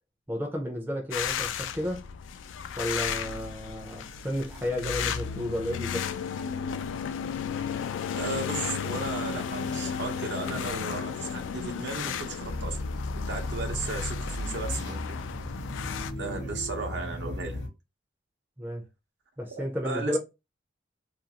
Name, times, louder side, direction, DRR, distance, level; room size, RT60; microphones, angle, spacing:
voice 1, 0.3-2.0 2.8-6.1 16.3-16.6 18.6-18.8 19.4-20.2, left 1 dB, 10° right, 0.5 m, -32 dB
sound 1, 1.1-16.1, left 7 dB, 90° left, 0.3 m, -34 dB
voice 2, 8.1-12.8 13.3-15.1 16.1-17.6 19.6-20.2, right 3 dB, 65° right, 0.7 m, -35 dB
sound 2, 12.4-17.7, left 1 dB, 65° left, 0.8 m, -35 dB
2.5 x 2.3 x 2.8 m
head